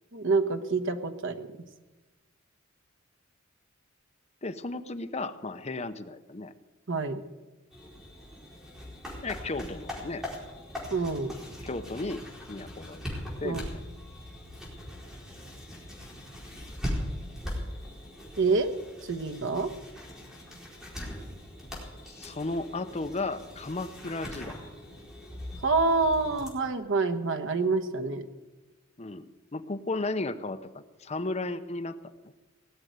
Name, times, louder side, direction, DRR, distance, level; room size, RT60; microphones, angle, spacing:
voice 1, 0.1-1.4 6.9-7.2 10.9-11.3 13.4-13.6 18.4-18.7 19.1-19.7 25.6-28.2, right 3 dB, 60° right, 9 dB, 1.2 m, -27 dB
voice 2, 4.4-6.5 9.2-10.2 11.6-13.0 13.4-13.7 22.2-24.6 29.0-32.0, left 2 dB, 30° left, 10 dB, 0.8 m, -34 dB
sound 1, 7.7-26.5, equal, 5° right, 4.3 m, -40 dB
18.5 x 7.9 x 9.4 m, 1.1 s
head